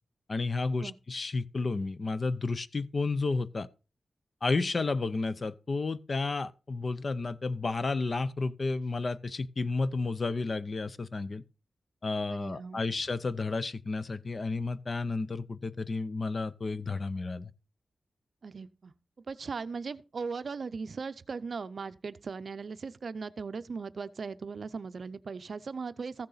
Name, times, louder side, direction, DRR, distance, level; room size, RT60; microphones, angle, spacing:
voice 1, 0.3-3.7 4.4-11.4 12.0-17.5, left 3 dB, 40° left, 0.5 m, -32 dB
voice 2, 12.3-12.8 18.4-18.9 19.3-26.3, right 5 dB, 55° right, 0.6 m, -38 dB
14.5 x 6.6 x 4.0 m
wide cardioid pair, 135°, 0 cm